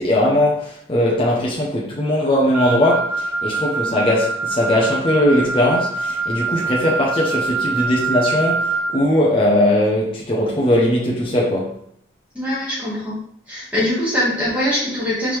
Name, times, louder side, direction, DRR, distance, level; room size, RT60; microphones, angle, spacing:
voice 1, 0.0-11.8, left 1 dB, 25° left, -4 dB, 0.7 m, -19 dB
Wind instrument woodwind instrument, 2.5-9.0, right 3 dB, 80° right, 0.9 m, -24 dB
voice 2, 12.3-13.2 13.5-15.4, left 1 dB, 5° right, -8 dB, 1.8 m, -22 dB
4.5 x 3.6 x 3.2 m, 0.69 s
head